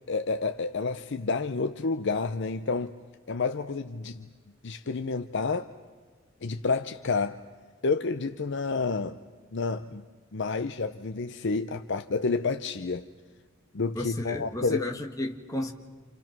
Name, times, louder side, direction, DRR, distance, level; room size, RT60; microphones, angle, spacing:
voice 1, 0.1-2.9 3.3-4.3 4.6-5.7 6.4-7.4 7.8-9.2 9.5-10.0 10.3-13.0 13.7-14.9, left 4 dB, 60° left, 0.7 m, -29 dB
voice 2, 14.0-15.7, left 1 dB, 15° left, 1.9 m, -33 dB
29.5 x 28.5 x 6.1 m
head